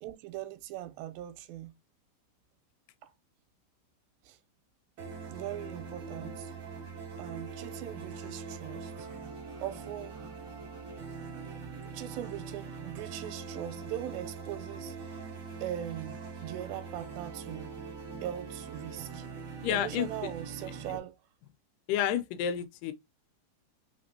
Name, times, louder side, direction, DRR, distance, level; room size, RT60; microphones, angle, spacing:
voice 1, 0.0-1.7 3.0-3.1 4.2-4.4 5.3-6.5 7.2-9.1 9.5-10.3 11.5-15.3 15.6-17.7 18.2-19.3 19.7-21.2, right 12 dB, 90° right, 2.4 m, -40 dB
sound 1, 5.0-21.0, right 5 dB, 50° right, 1.6 m, -42 dB
voice 2, 19.6-20.3 21.9-22.9, left 10 dB, 80° left, 2.1 m, -30 dB
5.0 x 3.4 x 2.6 m
omnidirectional pair, 4.1 m